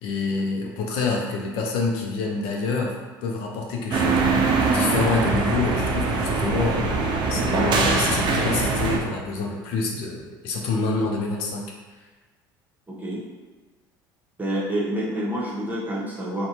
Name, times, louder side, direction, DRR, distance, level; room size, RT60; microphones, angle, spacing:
voice 1, 0.0-3.0 3.2-11.7, left 3 dB, 65° left, 0 dB, 0.4 m, -27 dB
sound 1, 3.9-9.0, right 4 dB, 45° right, 0.5 m, -22 dB
voice 2, 14.4-16.5, right 1 dB, 15° right, -5 dB, 0.9 m, -27 dB
2.6 x 2.1 x 2.9 m, 1.3 s
hypercardioid pair, 70°, 11 cm